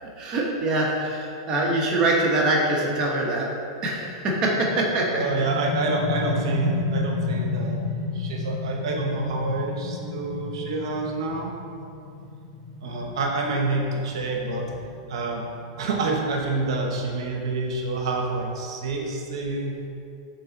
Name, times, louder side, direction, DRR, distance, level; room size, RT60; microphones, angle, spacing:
voice 1, 0.0-3.5 3.8-5.2, right 2 dB, 25° right, -3 dB, 1.0 m, -24 dB
sound 1, 4.2-15.7, left 4 dB, 40° left, 0.9 m, -32 dB
voice 2, 5.1-7.8 8.1-11.5 12.8-14.7 15.1-15.4 15.8-19.8, right 3 dB, 75° right, 0 dB, 0.9 m, -27 dB
6.9 x 3.8 x 4.0 m, 2.6 s
supercardioid pair, 145°, 3 cm